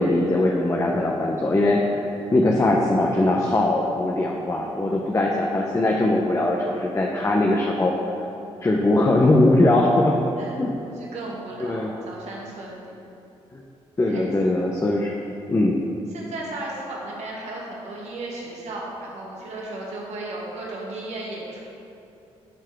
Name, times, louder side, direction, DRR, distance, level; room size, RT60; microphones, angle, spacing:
voice 1, 0.0-2.0 2.3-7.9 8.6-10.1 10.6-10.8 11.6-11.9 13.5-13.6 14.0-15.1 15.5-15.8, left 2 dB, 25° left, -1 dB, 0.9 m, -21 dB
voice 2, 10.4-12.9 14.1-14.3 16.1-21.6, right 2 dB, 75° right, -3 dB, 1.8 m, -35 dB
10.5 x 4.8 x 4.6 m, 2.7 s
supercardioid pair, 55°, 12 cm